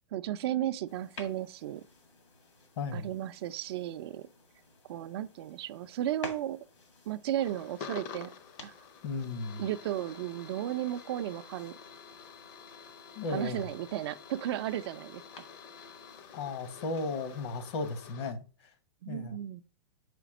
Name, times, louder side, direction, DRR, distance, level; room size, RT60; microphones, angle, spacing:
voice 1, 0.1-1.8 2.9-4.3 4.9-6.6 7.1-8.3 8.6-8.7 9.6-11.8 13.3-15.5 19.0-19.6, right 12 dB, 60° right, 0.4 m, -34 dB
sound 1, 0.8-18.1, left 3 dB, 85° left, 2.1 m, -54 dB
voice 2, 2.8-3.1 9.0-9.6 13.1-13.6 16.3-18.4 19.1-19.4, left 3 dB, 60° left, 1.0 m, -35 dB
sound 2, 7.4-18.3, left 6 dB, 45° left, 0.6 m, -49 dB
5.0 x 4.1 x 5.0 m
hypercardioid pair, 140°, 15 cm